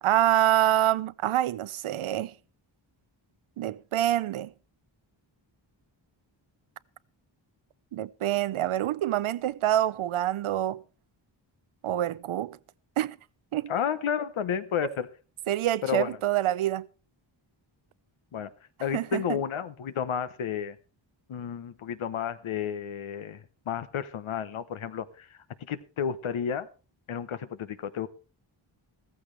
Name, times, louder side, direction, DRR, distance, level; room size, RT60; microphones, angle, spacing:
voice 1, 0.0-2.3 3.6-4.5 7.9-10.8 11.8-12.6 13.0-13.2 13.5-13.7 15.5-16.9 18.9-19.4, right 13 dB, 85° right, 0.7 m, -26 dB
voice 2, 13.7-15.1 15.8-16.2 18.3-18.5 18.8-20.8 21.3-26.7 27.1-28.1, left 8 dB, 80° left, 1.1 m, -32 dB
15.5 x 14.5 x 3.3 m
wide cardioid pair, 110°, 48 cm